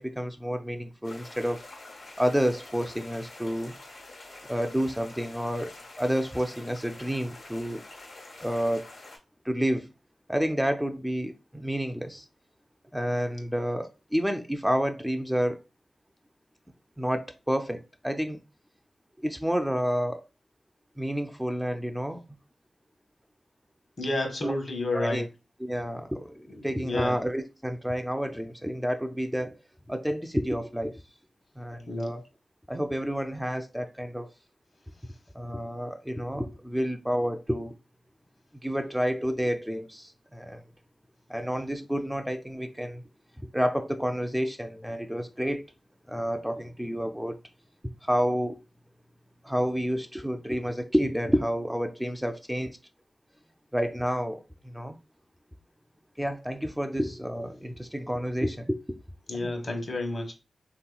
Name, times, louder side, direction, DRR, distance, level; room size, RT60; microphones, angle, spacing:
voice 1, 0.0-1.7 2.2-3.7 4.5-7.8 8.4-8.9 9.5-9.9 10.3-12.3 12.9-15.6 17.0-18.4 19.2-20.2 21.0-22.2 24.4-24.6 24.9-25.2 25.6-31.0 31.6-32.2 32.7-34.3 35.3-37.8 38.6-40.6 41.3-43.0 43.5-45.7 46.1-47.4 48.0-48.6 49.4-52.8 53.7-55.0 56.2-59.0 59.3-59.7, equal, 5° right, 0.3 m, -29 dB
sound 1, 1.0-9.2, left 2 dB, 90° left, 1.3 m, -47 dB
voice 2, 24.0-25.2 26.5-27.2 31.9-32.1 59.3-60.3, left 2 dB, 60° left, 1.0 m, -30 dB
3.1 x 2.8 x 2.3 m
cardioid pair, 50°, 0 cm